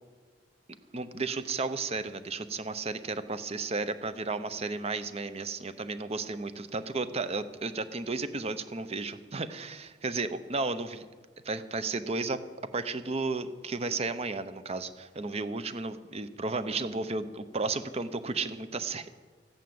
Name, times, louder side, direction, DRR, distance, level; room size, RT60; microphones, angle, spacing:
voice 1, 0.9-3.0 3.3-11.1 11.4-12.4 12.7-19.1, right 3 dB, 35° right, 12 dB, 0.7 m, -33 dB
14.5 x 9.1 x 7.7 m, 1.4 s
head